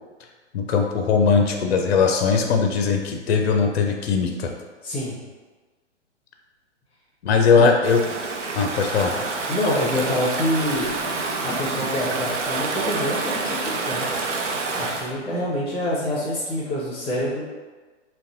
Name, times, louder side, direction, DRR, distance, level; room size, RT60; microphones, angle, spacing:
voice 1, 0.5-4.5 7.2-8.0 8.5-9.1, left 5 dB, 60° left, 3 dB, 0.5 m, -19 dB
voice 2, 4.8-5.2 7.5-7.7 9.5-10.9 11.4-14.1 14.7-17.4, left 1 dB, 15° left, -7 dB, 0.7 m, -26 dB
Stream / Ocean, 7.8-15.1, right 3 dB, 70° right, 0.5 m, -27 dB
3.9 x 2.2 x 2.6 m, 1.3 s
figure-of-eight pair, 115°, 36 cm